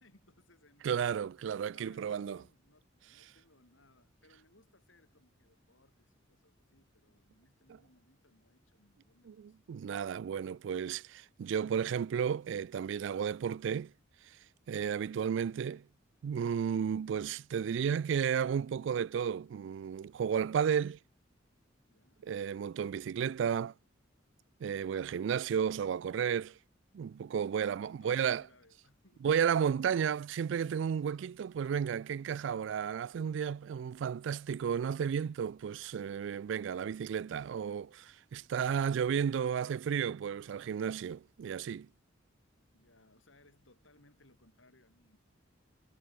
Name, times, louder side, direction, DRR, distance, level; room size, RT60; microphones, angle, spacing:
voice 1, 0.0-1.2 1.7-9.6 13.4-13.6 15.1-15.7 21.9-22.3 27.5-29.5 42.7-45.2, left 2 dB, 80° left, 7.5 m, -66 dB
voice 2, 0.8-2.4 9.3-13.9 14.7-15.8 16.2-21.0 22.2-23.7 24.6-26.6 26.9-28.4 29.2-41.9, right 7 dB, 65° right, 0.3 m, -33 dB
head